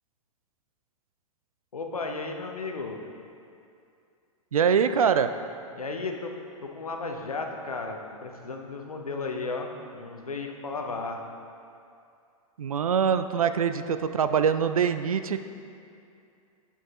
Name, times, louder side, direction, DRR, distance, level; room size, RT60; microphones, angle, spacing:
voice 1, 1.7-3.0 5.7-6.3 6.6-11.2, left 3 dB, 80° left, 3 dB, 0.8 m, -34 dB
voice 2, 4.5-5.3 12.6-15.4, right 7 dB, 75° right, 10 dB, 0.4 m, -24 dB
9.9 x 7.1 x 2.4 m, 2.5 s
figure-of-eight pair, 100°, 18 cm